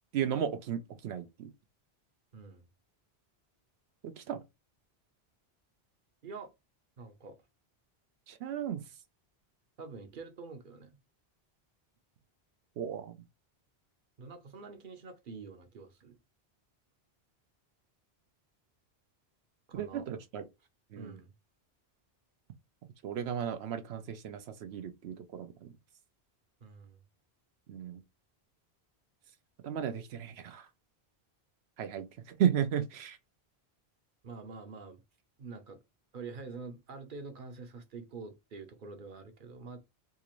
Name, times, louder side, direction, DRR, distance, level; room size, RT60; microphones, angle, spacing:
voice 1, 0.1-1.5 4.0-4.4 8.3-8.8 12.8-13.2 19.7-20.4 20.9-21.2 23.0-25.7 27.7-28.0 29.6-30.7 31.8-33.2, right 9 dB, 80° right, 0.8 m, -34 dB
voice 2, 2.3-2.6 6.2-6.5 7.0-7.4 9.8-11.0 14.2-16.2 19.7-20.1 21.0-21.3 26.6-27.0 34.2-35.0 35.4-35.8 36.1-39.8, right 4 dB, 55° right, 0.9 m, -46 dB
3.8 x 2.5 x 3.0 m
omnidirectional pair, 1.1 m